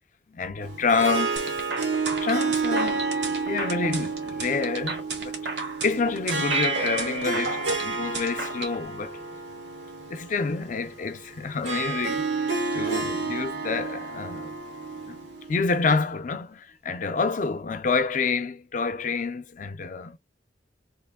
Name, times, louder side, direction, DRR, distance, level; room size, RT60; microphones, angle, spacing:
voice 1, 0.3-1.4 2.2-5.3 5.8-9.1 10.1-12.5 12.7-14.5 15.1-15.2 15.5-20.2, left 4 dB, 45° left, 0.5 m, -28 dB
Harp, 0.6-15.9, right 4 dB, 90° right, 1.1 m, -30 dB
sound 1, 1.4-8.7, right 3 dB, 75° right, 1.0 m, -34 dB
sound 2, 6.5-9.3, right 3 dB, 35° right, 0.4 m, -33 dB
3.0 x 2.5 x 3.5 m
head